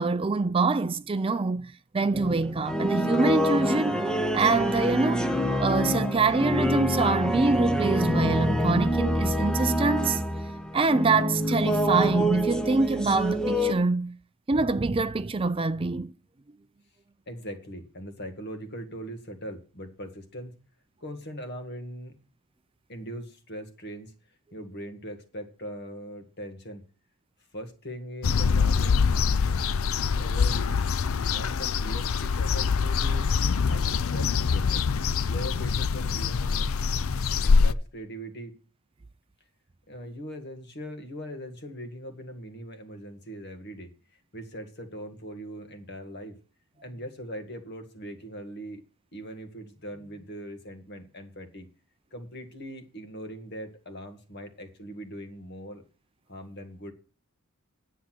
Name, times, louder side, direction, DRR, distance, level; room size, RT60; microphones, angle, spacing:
voice 1, 0.0-5.3 5.6-10.2 10.7-14.2 14.5-16.1, right 3 dB, 25° right, 0.4 m, -25 dB
sound 1, 2.1-13.7, equal, 5° left, 0.8 m, -26 dB
voice 2, 17.3-20.5 21.0-22.1 22.9-24.1 24.5-26.8 27.5-29.1 30.2-30.8 31.2-33.3 33.6-34.9 35.3-36.7 37.4-38.5 39.9-43.9 44.3-46.3 46.8-48.8 49.1-51.7 52.1-55.8 56.3-56.9, equal, 50° left, 2.0 m, -40 dB
sound 2, 28.2-37.7, left 5 dB, 65° left, 0.5 m, -24 dB
10.0 x 8.3 x 6.0 m
head